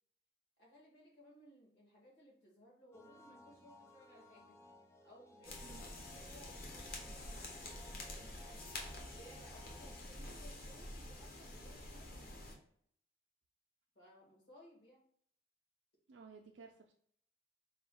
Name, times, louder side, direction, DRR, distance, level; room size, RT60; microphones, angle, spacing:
voice 1, 0.6-4.6 5.0-8.7 9.1-12.4 14.0-15.1, equal, 65° left, -3 dB, 1.7 m, -62 dB
sound 1, 2.9-10.0, left 1 dB, 15° left, 0.4 m, -60 dB
sound 2, 5.4-12.6, left 1 dB, 50° left, 0.8 m, -48 dB
voice 2, 16.1-16.9, right 5 dB, 75° right, 2 dB, 0.4 m, -56 dB
4.9 x 2.3 x 3.5 m, 0.65 s
head